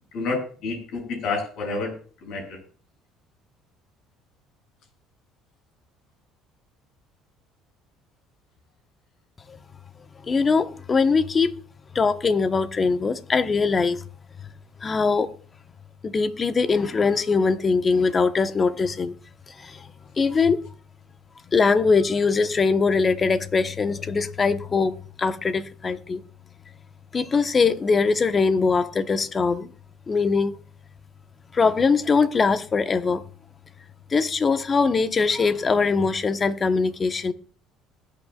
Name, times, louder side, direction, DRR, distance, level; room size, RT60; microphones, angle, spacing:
voice 1, 0.1-1.9 2.2-2.6, left 3 dB, 65° left, 7.2 m, -29 dB
voice 2, 10.2-11.5 11.9-14.0 14.8-15.3 16.0-19.1 19.5-20.6 21.5-26.2 27.1-29.7 30.1-30.5 31.5-33.2 34.1-37.3, left 4 dB, 35° left, 1.2 m, -22 dB
21.0 x 9.2 x 2.5 m
hypercardioid pair, 65°, 0 cm